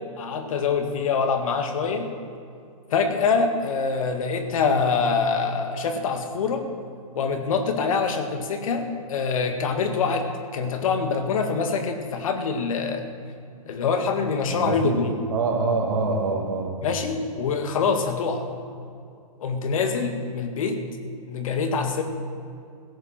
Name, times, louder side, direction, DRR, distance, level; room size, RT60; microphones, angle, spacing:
voice 1, 0.2-2.2 2.9-6.7 7.2-13.1 13.7-15.2 16.8-18.5 19.4-20.9 21.3-22.0, left 5 dB, 65° left, 6 dB, 2.0 m, -25 dB
voice 2, 14.4-15.0 15.3-16.8, right 3 dB, 70° right, -2 dB, 2.9 m, -25 dB
16.5 x 14.0 x 4.4 m, 2.5 s
hypercardioid pair, 130°, 19 cm